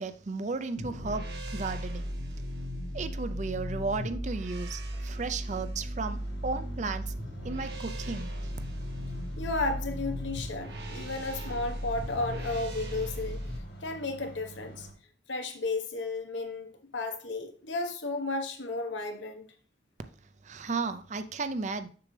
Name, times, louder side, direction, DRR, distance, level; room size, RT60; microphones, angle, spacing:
voice 1, 0.0-2.4 2.9-7.1 7.4-8.3 20.4-21.9, right 4 dB, 40° right, 0.5 m, -34 dB
sound 1, 0.8-13.6, equal, 60° right, 1.3 m, -36 dB
sound 2, 6.2-14.9, right 2 dB, 65° left, 1.8 m, -48 dB
voice 2, 9.4-13.4 13.8-14.9 15.3-19.5, left 2 dB, 85° left, 1.2 m, -33 dB
6.8 x 6.3 x 3.3 m
head